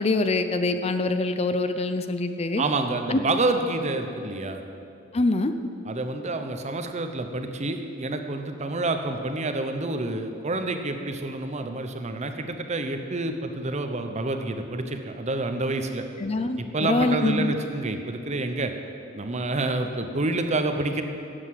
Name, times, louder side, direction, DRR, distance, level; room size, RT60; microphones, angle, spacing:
voice 1, 0.0-2.6 3.1-3.2 5.1-5.5 16.2-17.5, left 2 dB, 30° left, 9 dB, 0.5 m, -24 dB
voice 2, 2.6-4.6 5.9-16.0 16.6-18.7 19.1-21.0, right 2 dB, 35° right, 6 dB, 0.9 m, -28 dB
12.5 x 8.1 x 7.6 m, 2.7 s
head